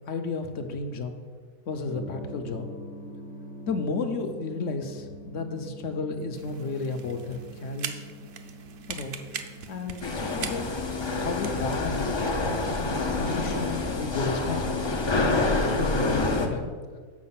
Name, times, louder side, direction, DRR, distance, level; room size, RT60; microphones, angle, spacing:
voice 1, 0.1-1.1 1.7-2.7 3.7-8.0 8.9-9.2 9.7-10.7 11.1-12.2 13.1-15.0 15.7-16.7, left 3 dB, 65° left, 6 dB, 1.0 m, -33 dB
Gong, 1.8-15.6, right 1 dB, 85° right, 2.0 m, -46 dB
sound 1, 6.3-14.4, right 7 dB, 60° right, 0.6 m, -42 dB
sound 2, 10.0-16.5, left 3 dB, 45° left, 0.3 m, -27 dB
7.4 x 5.1 x 5.6 m, 1.5 s
omnidirectional pair, 1.5 m